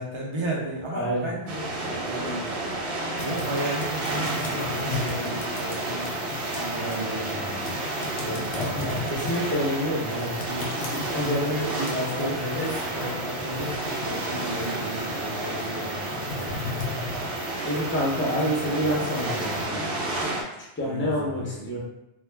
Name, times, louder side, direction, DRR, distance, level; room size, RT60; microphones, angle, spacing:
voice 1, 0.0-2.5 3.2-6.1 6.5-7.8 11.2-16.7 20.8-21.8, right 1 dB, 45° right, -2 dB, 0.4 m, -34 dB
voice 2, 0.9-1.3 8.2-10.6 10.9-11.5 11.9-12.4 17.6-20.0 20.6-21.8, equal, 15° left, -4 dB, 0.4 m, -28 dB
sound 1, 1.5-20.4, right 2 dB, 65° right, 0.7 m, -31 dB
sound 2, 3.2-19.6, left 4 dB, 65° left, 0.7 m, -38 dB
2.3 x 2.1 x 3.2 m, 0.89 s
omnidirectional pair, 1.1 m